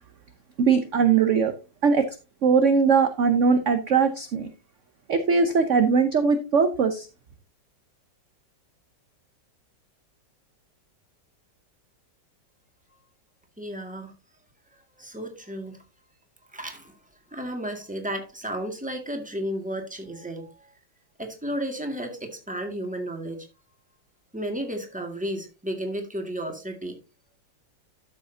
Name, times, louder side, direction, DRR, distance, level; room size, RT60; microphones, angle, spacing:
voice 1, 0.6-1.5 1.8-2.1 2.4-4.5 5.1-7.1, right 5 dB, 50° right, 1.1 m, -20 dB
voice 2, 13.6-14.1 15.0-15.8 16.5-16.9 17.3-20.5 21.2-23.4 24.3-27.0, right 1 dB, 5° right, 2.0 m, -33 dB
12.0 x 7.8 x 2.8 m
omnidirectional pair, 2.0 m